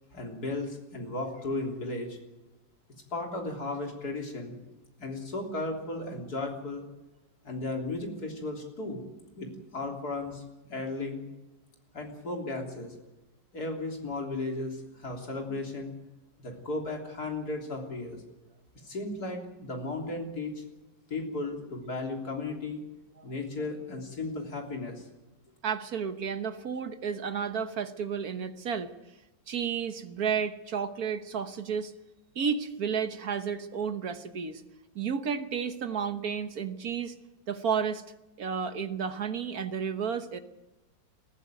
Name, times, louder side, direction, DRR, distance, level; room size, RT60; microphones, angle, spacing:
voice 1, 0.1-2.2 3.1-4.6 5.0-6.8 7.4-9.0 9.4-10.4 10.7-11.3 11.9-12.9 13.5-15.9 16.4-18.2 18.8-20.6 21.1-22.8 23.2-25.1, left 2 dB, 55° left, 2 dB, 4.0 m, -35 dB
voice 2, 25.6-28.9 29.5-31.9 32.3-34.6 34.9-37.1 37.5-38.0 38.4-40.4, right 6 dB, 55° right, 9 dB, 1.6 m, -32 dB
20.5 x 14.5 x 9.3 m, 1.0 s
omnidirectional pair, 2.0 m